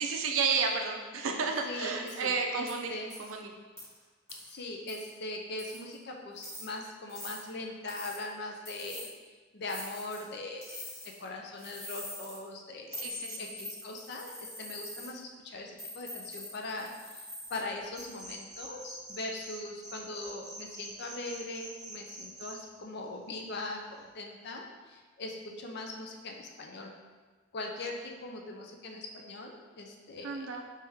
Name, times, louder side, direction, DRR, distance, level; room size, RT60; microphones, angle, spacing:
voice 1, 0.0-2.9 3.2-3.5 13.0-13.5 30.2-30.6, right 5 dB, 75° right, 3 dB, 0.4 m, -31 dB
voice 2, 1.6-3.1 4.4-9.1 9.5-10.8 11.2-26.9 27.5-30.6, left 2 dB, 50° left, 1 dB, 0.4 m, -41 dB
sound 1, 2.1-2.2 2.7-2.8 3.1-3.3 3.8-3.9 4.3-4.5 4.9-5.1 5.6-5.9 6.4-6.7 7.1-7.4 7.9-8.2 8.7-9.1 9.7-10.2 10.6-11.2 11.6-12.4 12.9-15.1 15.8-17.6 18.0-18.3, left 1 dB, 10° left, 1.1 m, -44 dB
sound 2, 17.9-19.6 19.8-22.5, right 2 dB, 5° right, 0.9 m, -45 dB
3.5 x 3.3 x 2.7 m, 1.4 s
head